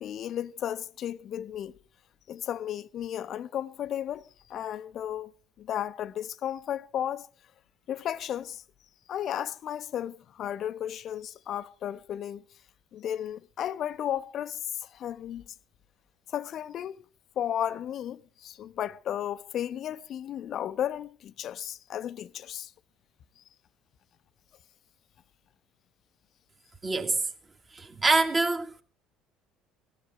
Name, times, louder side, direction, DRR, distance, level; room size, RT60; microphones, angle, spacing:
voice 1, 0.0-1.8 2.3-5.3 5.6-7.3 7.9-8.6 9.1-12.4 12.9-15.4 16.3-17.0 17.4-22.7, left 10 dB, 50° left, 0.7 m, -34 dB
voice 2, 26.8-27.2 27.7-28.8, right 3 dB, 30° right, 1.8 m, -25 dB
18.0 x 15.0 x 3.5 m
figure-of-eight pair, 60°, 0 cm